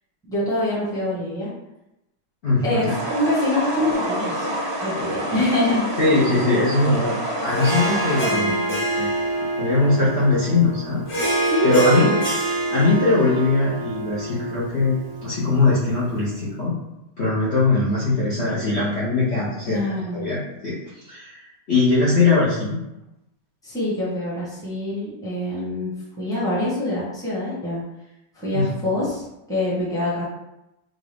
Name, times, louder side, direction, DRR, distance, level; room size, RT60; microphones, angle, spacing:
voice 1, 0.2-1.5 2.6-4.4 4.8-5.9 8.2-8.6 11.5-12.2 19.7-20.3 23.6-27.8 28.3-30.2, left 1 dB, 5° left, -8 dB, 0.8 m, -25 dB
voice 2, 2.4-2.9 6.0-7.2 7.4-9.1 9.6-11.3 11.6-12.1 12.7-15.0 15.2-16.8 17.2-19.8 20.1-20.8 21.1-21.4 21.7-22.8 28.5-28.7, left 3 dB, 80° left, -8 dB, 0.6 m, -21 dB
sound 1, 2.9-8.3, right 1 dB, 50° right, 0.7 m, -27 dB
Harp, 7.4-16.1, right 2 dB, 45° left, 1.4 m, -26 dB
3.9 x 2.5 x 3.4 m, 0.91 s
omnidirectional pair, 2.3 m